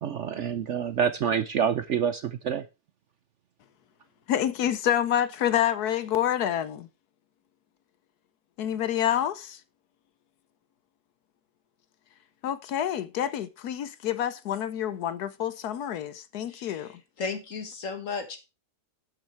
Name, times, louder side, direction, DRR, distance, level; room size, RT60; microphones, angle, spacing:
voice 1, 0.0-2.6, right 8 dB, 60° right, 0.8 m, -27 dB
voice 2, 4.3-6.9 8.6-9.6 12.4-16.9, left 10 dB, 75° left, 1.2 m, -28 dB
voice 3, 16.5-18.4, left 4 dB, 50° left, 2.0 m, -35 dB
12.0 x 6.5 x 4.5 m
omnidirectional pair, 1.7 m